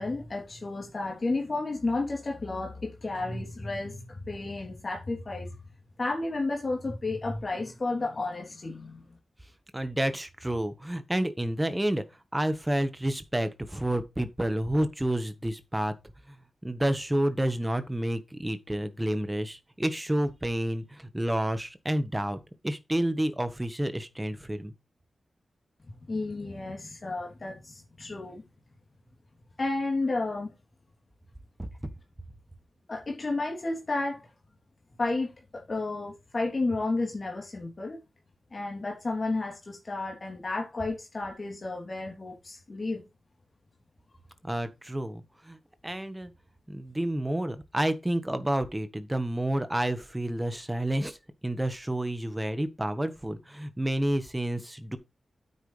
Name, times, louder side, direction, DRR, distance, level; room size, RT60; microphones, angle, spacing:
voice 1, 0.0-5.5 6.0-9.0 26.1-28.4 29.6-30.5 32.9-34.2 35.0-38.0 38.5-43.1, left 2 dB, 35° left, 3.1 m, -32 dB
voice 2, 9.7-12.0 12.3-15.9 16.3-16.4 16.6-22.4 22.6-24.7 31.6-31.7 44.4-45.6 45.8-46.3 46.7-51.2 51.4-55.0, right 1 dB, 10° right, 1.4 m, -29 dB
9.3 x 8.3 x 3.3 m
wide cardioid pair, 120°, 0 cm